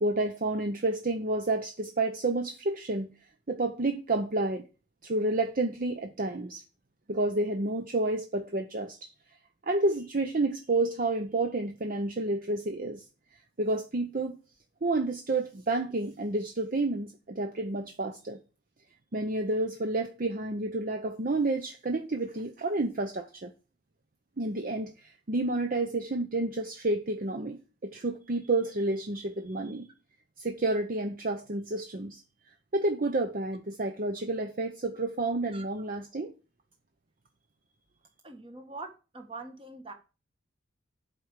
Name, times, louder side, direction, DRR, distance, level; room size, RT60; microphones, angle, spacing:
voice 1, 0.0-3.1 3.5-4.6 5.0-6.6 7.1-9.1 9.6-13.0 13.6-14.4 14.8-18.4 19.1-23.5 24.4-29.9 30.4-32.2 32.7-36.3, right 2 dB, 45° right, 0.7 m, -30 dB
voice 2, 38.2-39.9, right 3 dB, 25° right, 1.5 m, -43 dB
8.1 x 4.7 x 7.4 m
head